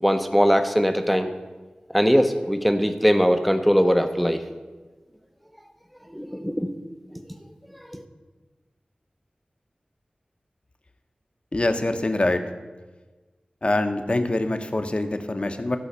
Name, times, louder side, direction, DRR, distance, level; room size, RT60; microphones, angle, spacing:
voice 1, 0.0-1.3 1.9-4.4 6.1-6.7 7.9-8.0, equal, ahead, 8 dB, 0.9 m, -21 dB
voice 2, 11.5-12.4 13.6-15.8, left 2 dB, 40° left, 7 dB, 1.0 m, -24 dB
14.5 x 5.5 x 6.8 m, 1.3 s
wide cardioid pair, 60°, 3 cm